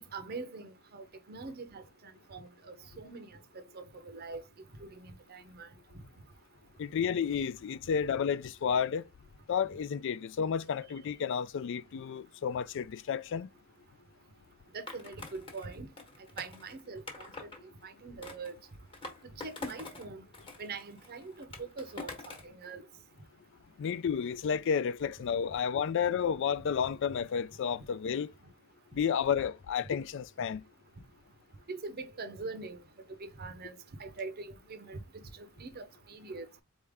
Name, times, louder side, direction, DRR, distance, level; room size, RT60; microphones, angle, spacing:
voice 1, 0.1-3.3 3.5-4.4 4.8-5.7 14.7-15.9 16.4-17.5 17.8-18.5 19.4-20.2 20.6-22.8 31.7-32.8 33.2-33.7 34.0-35.0 35.4-36.6, right 4 dB, 50° right, 0.6 m, -43 dB
voice 2, 6.8-9.1 9.5-13.5 23.8-28.3 28.9-30.6, left 7 dB, 60° left, 0.3 m, -31 dB
Skateboard, 14.9-17.6 18.2-20.1 20.3-22.5, left 3 dB, 25° left, 1.2 m, -45 dB
4.2 x 3.5 x 3.4 m
head